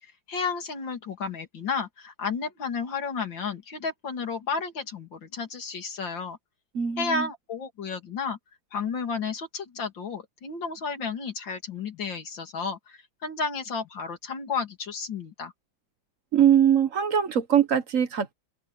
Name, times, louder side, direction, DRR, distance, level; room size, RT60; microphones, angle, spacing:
voice 1, 0.0-6.4 7.0-8.4 8.7-15.5, left 5 dB, 70° left, 3.3 m, -32 dB
voice 2, 6.7-7.3 16.3-18.3, right 9 dB, 50° right, 1.3 m, -22 dB
open air
omnidirectional pair, 2.1 m